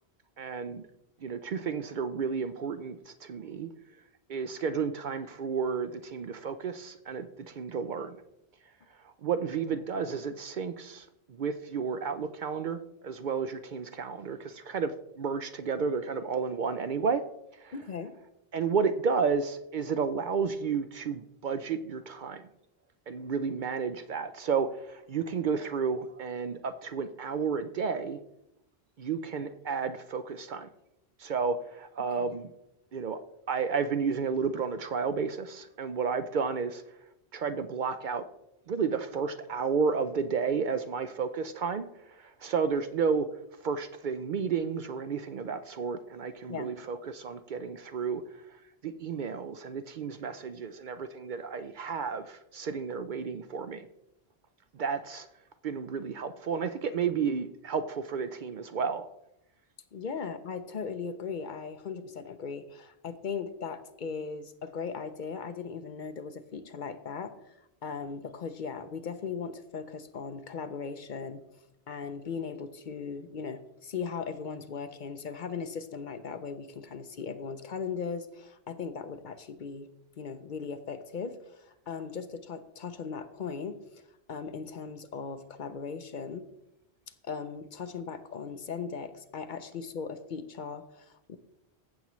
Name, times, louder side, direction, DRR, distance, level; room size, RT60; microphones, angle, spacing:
voice 1, 0.4-0.8 1.2-3.7 4.3-8.2 9.0-14.9 15.2-17.2 17.6-17.7 18.5-22.4 23.1-28.2 29.0-30.7 31.2-32.5 32.9-33.2 33.5-36.8 37.3-38.3 38.7-43.3 43.6-48.2 48.8-53.9 54.7-55.3 55.6-59.1, right 5 dB, 60° right, 10 dB, 0.6 m, -32 dB
voice 2, 17.7-18.1 32.1-32.2 46.5-46.8 59.9-67.6 67.8-71.4 71.9-79.9 80.2-86.5 87.2-91.4, left 5 dB, 55° left, 11 dB, 0.7 m, -38 dB
15.0 x 7.1 x 3.1 m, 0.86 s
omnidirectional pair, 1.1 m